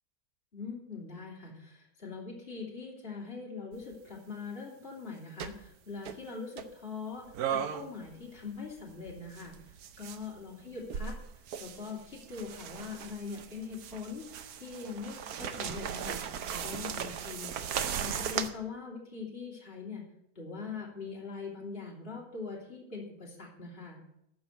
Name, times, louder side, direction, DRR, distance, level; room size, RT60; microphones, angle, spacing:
voice 1, 0.5-11.1 11.6-16.2 16.5-17.6 18.0-20.0 20.3-24.0, left 5 dB, 40° left, -3 dB, 3.0 m, -42 dB
sound 1, 3.7-3.9 5.4-5.7 6.1-6.2 6.6-6.7 7.3-8.1 8.4-10.3 10.8-18.5, right 8 dB, 80° right, 1.3 m, -37 dB
13.5 x 5.5 x 7.8 m, 0.77 s
omnidirectional pair, 1.6 m